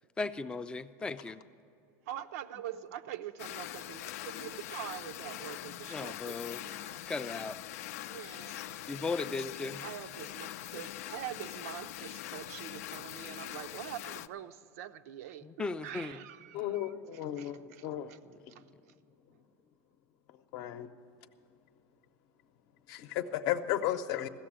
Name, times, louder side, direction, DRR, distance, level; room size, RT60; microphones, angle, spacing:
voice 1, 0.2-1.4 5.9-6.6 7.1-7.7 8.9-9.8 15.4-16.2 17.6-18.4, left 3 dB, 10° left, 12 dB, 0.3 m, -37 dB
voice 2, 2.1-7.1 8.1-9.4 9.8-16.9 17.4-18.2 18.5-18.6, right 11 dB, 85° right, 10 dB, 0.6 m, -45 dB
sound 1, 3.4-14.3, left 13 dB, 90° left, 0.4 m, -43 dB
voice 3, 16.5-18.1 20.5-20.9 22.9-24.3, left 12 dB, 55° left, 10 dB, 0.7 m, -34 dB
15.5 x 6.9 x 8.7 m, 2.7 s
supercardioid pair, 150°, 8 cm